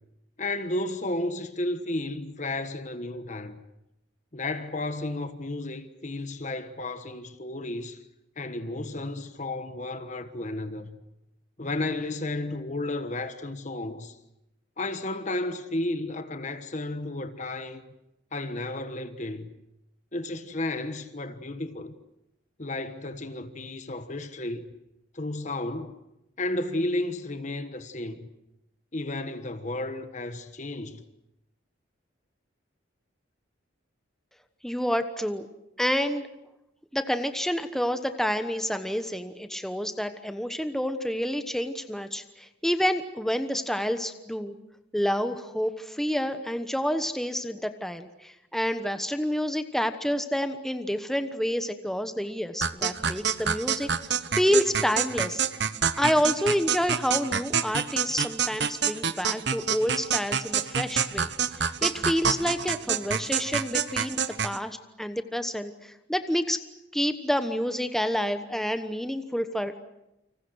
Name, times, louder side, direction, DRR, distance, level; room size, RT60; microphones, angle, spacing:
voice 1, 0.4-3.6 4.3-8.0 8.4-11.0 11.6-14.2 14.8-17.9 18.3-19.5 20.1-21.9 22.6-24.6 25.1-26.0 26.4-28.3 28.9-31.0, left 2 dB, 40° left, 1.3 m, -33 dB
voice 2, 34.6-35.5 35.8-36.3 36.9-44.5 44.9-55.4 56.0-61.3 61.8-66.6 66.9-69.8, equal, ahead, 1.1 m, -28 dB
sound 1, 52.6-64.6, right 7 dB, 60° right, 1.1 m, -27 dB
29.5 x 26.0 x 6.4 m
head